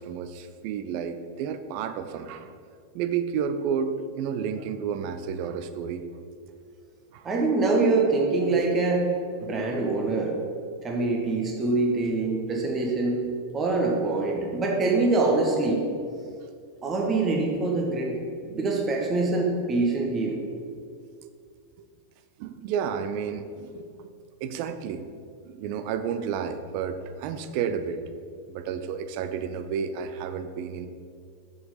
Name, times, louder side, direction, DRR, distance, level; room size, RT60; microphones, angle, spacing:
voice 1, 0.0-2.5 2.9-6.0 7.1-7.3 21.2-21.3 22.4-23.9 24.4-25.0 25.4-28.0 28.5-30.9, right 7 dB, 45° right, 10 dB, 0.6 m, -31 dB
voice 2, 7.2-9.1 9.4-10.3 10.8-13.2 13.5-15.8 16.8-18.2 18.4-20.4, right 3 dB, 25° right, 0 dB, 1.4 m, -24 dB
6.6 x 6.5 x 5.6 m, 2.3 s
figure-of-eight pair, 90°, 0 cm